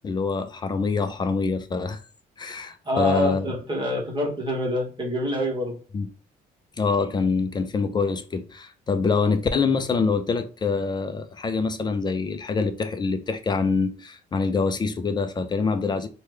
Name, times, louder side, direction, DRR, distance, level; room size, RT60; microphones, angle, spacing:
voice 1, 0.0-2.0 2.4-3.5 5.9-6.1 6.8-16.1, left 4 dB, 25° left, 0.4 m, -25 dB
voice 2, 2.8-5.8, left 1 dB, 30° right, 1.1 m, -26 dB
3.0 x 2.2 x 3.3 m
cardioid pair, 110°, 17 cm